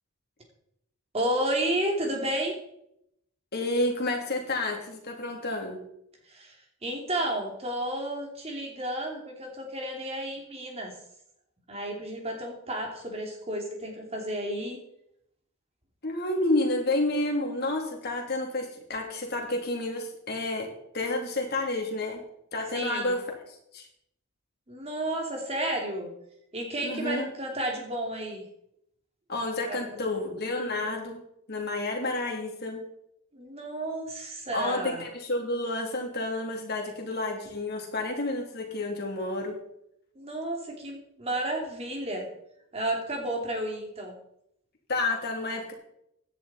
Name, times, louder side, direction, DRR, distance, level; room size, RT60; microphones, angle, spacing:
voice 1, 1.1-2.6 6.3-10.9 11.7-14.8 22.7-23.2 24.7-26.1 26.5-28.4 29.7-30.1 33.3-35.0 40.2-42.3 42.7-44.2, right 1 dB, 30° right, 1 dB, 2.8 m, -32 dB
voice 2, 3.5-5.8 16.0-20.7 20.9-22.2 22.5-23.2 23.7-23.9 26.8-27.3 29.3-31.2 31.5-32.8 34.5-39.5 44.9-45.7, left 2 dB, 45° left, 1 dB, 3.1 m, -30 dB
16.5 x 10.0 x 4.3 m, 0.76 s
head